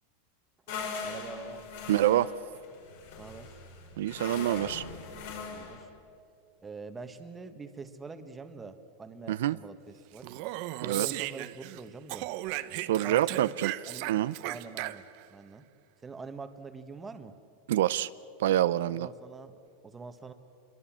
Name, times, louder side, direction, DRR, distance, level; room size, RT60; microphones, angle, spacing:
sound 1, 0.7-5.8, left 5 dB, 70° left, 5.6 m, -41 dB
voice 1, 1.0-1.7 3.2-3.6 5.5-5.9 6.6-10.3 10.8-12.3 12.6-12.7 13.0-13.6 13.9-14.1 14.4-15.7 16.0-17.3 18.9-20.3, right 4 dB, 15° right, 8 dB, 1.5 m, -45 dB
voice 2, 1.9-2.3 4.0-4.8 9.3-9.6 10.8-11.1 12.8-13.7 14.1-14.3 17.7-18.1 18.4-19.1, right 13 dB, 80° right, 15 dB, 0.5 m, -26 dB
Speech, 10.2-11.8 12.1-15.3, right 17 dB, 50° right, 0.9 m, -36 dB
26.5 x 23.5 x 7.5 m, 2.4 s
supercardioid pair, 150°, 0 cm